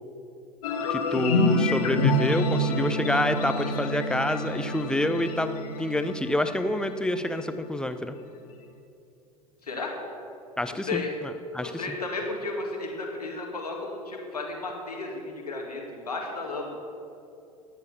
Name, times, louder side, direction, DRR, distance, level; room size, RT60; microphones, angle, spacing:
sound 1, 0.6-7.7, left 1 dB, 65° left, 1.7 m, -27 dB
voice 1, 0.9-8.1 10.6-11.9, left 1 dB, 5° left, 9 dB, 0.8 m, -28 dB
voice 2, 9.6-9.9 10.7-11.1 11.6-16.7, left 3 dB, 80° left, 0 dB, 2.2 m, -33 dB
13.5 x 10.0 x 6.9 m, 2.7 s
figure-of-eight pair, 75°, 20 cm